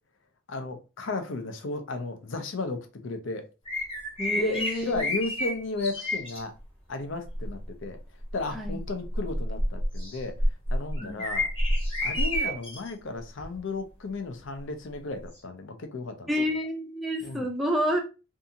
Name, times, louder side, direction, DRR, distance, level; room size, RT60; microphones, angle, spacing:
voice 1, 0.5-3.5 4.3-6.5 6.9-8.0 8.3-10.4 10.7-11.5 12.0-16.3 17.2-17.5, left 2 dB, 60° left, 0.5 m, -34 dB
sound 1, 3.7-6.4 7.2-7.6 8.2-12.9 13.4-13.6 15.4-15.5, left 1 dB, 25° left, 1.0 m, -29 dB
voice 2, 4.2-5.1 8.5-8.8 11.0-11.3 16.3-18.0, equal, ahead, 0.5 m, -29 dB
2.7 x 2.4 x 2.7 m
head